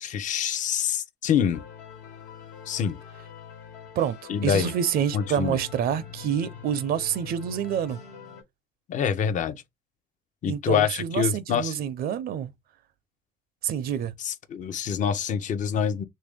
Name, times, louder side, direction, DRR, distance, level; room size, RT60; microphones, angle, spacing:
voice 1, 0.0-1.6 2.7-3.0 4.3-4.7 5.1-5.6 8.9-9.6 10.4-11.8 14.2-16.0, left 8 dB, 50° left, 0.6 m, -26 dB
sound 1, 1.5-8.4, left 7 dB, 85° left, 1.4 m, -44 dB
voice 2, 4.4-8.0 10.4-12.5 13.6-14.1, right 9 dB, 60° right, 0.5 m, -27 dB
3.1 x 2.6 x 3.5 m
cardioid pair, 110°, 17 cm